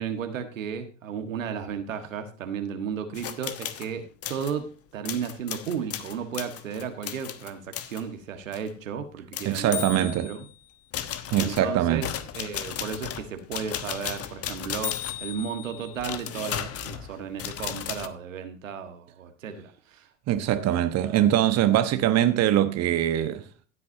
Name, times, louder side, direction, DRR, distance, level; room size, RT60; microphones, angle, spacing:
voice 1, 0.0-10.4 11.4-12.1 12.3-20.1, right 7 dB, 85° right, 1.6 m, -34 dB
sound 1, 3.1-3.9 4.2-4.6 5.0-8.0 8.5-8.7 9.3-10.5 10.9-18.1, left 10 dB, 40° left, 1.2 m, -35 dB
voice 2, 9.4-10.3 11.3-12.1 20.3-23.4, right 11 dB, 40° right, 1.2 m, -23 dB
16.0 x 8.5 x 2.8 m
hypercardioid pair, 80°, 38 cm